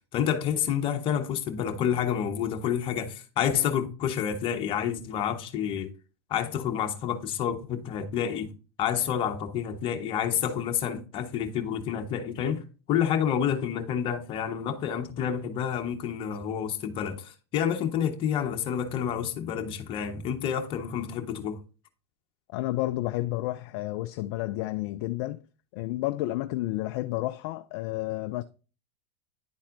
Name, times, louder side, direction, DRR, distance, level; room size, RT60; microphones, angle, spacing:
voice 1, 0.1-5.9 6.3-8.5 8.8-21.6, left 9 dB, 40° left, 1.2 m, -29 dB
voice 2, 22.5-25.4 25.7-28.4, left 17 dB, 55° left, 0.4 m, -31 dB
10.5 x 4.1 x 2.6 m
hypercardioid pair, 105°, 14 cm